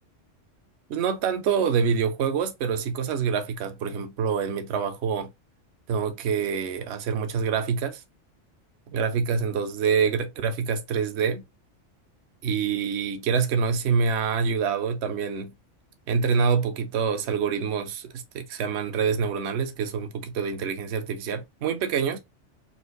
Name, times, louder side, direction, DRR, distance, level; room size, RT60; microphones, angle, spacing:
voice 1, 0.9-5.3 5.9-8.0 8.9-11.4 12.4-15.5 16.1-22.2, right 6 dB, 65° right, 1.0 m, -26 dB
4.3 x 2.5 x 3.9 m
omnidirectional pair, 1.3 m